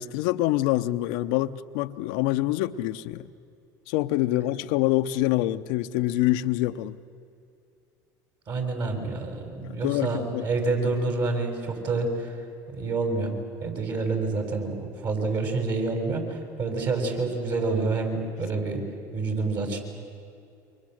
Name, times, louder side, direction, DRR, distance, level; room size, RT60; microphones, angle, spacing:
voice 1, 0.0-3.3 3.9-7.0 9.6-10.5, left 15 dB, 75° left, 0.8 m, -26 dB
voice 2, 8.5-12.3 12.7-13.3 13.6-18.8 19.1-19.8, right 3 dB, 50° right, 6.8 m, -28 dB
28.5 x 25.0 x 8.0 m
hypercardioid pair, 85°, 9 cm